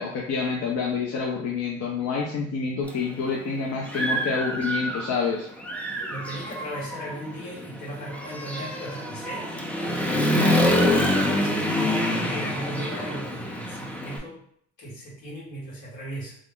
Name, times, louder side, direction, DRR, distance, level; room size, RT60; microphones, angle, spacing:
voice 1, 0.0-5.5, left 5 dB, 55° left, -2 dB, 0.5 m, -28 dB
Human voice / Motorcycle, 2.9-3.0 3.5-5.2 5.6-14.2, left 1 dB, 5° left, 0.4 m, -26 dB
voice 2, 6.1-14.4 14.8-16.4, right 1 dB, 90° left, -10 dB, 1.3 m, -37 dB
2.4 x 2.0 x 3.6 m, 0.66 s
cardioid pair, 90°, 30 cm